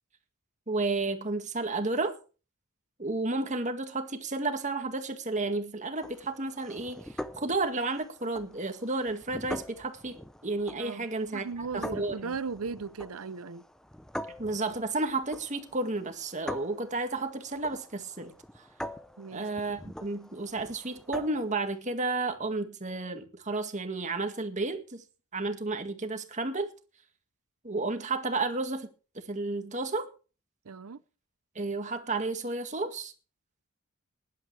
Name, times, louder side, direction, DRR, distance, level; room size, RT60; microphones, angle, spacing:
voice 1, 0.7-2.2 3.0-11.4 11.7-12.3 14.4-18.3 19.3-25.0 25.3-26.7 27.6-28.9 29.2-30.1 31.6-33.1, right 3 dB, 35° right, 1.9 m, -32 dB
sound 1, 6.0-21.5, equal, 5° left, 0.6 m, -44 dB
voice 2, 11.3-13.6 19.2-19.5 30.6-31.0, right 5 dB, 80° right, 0.7 m, -37 dB
20.0 x 11.5 x 3.3 m
head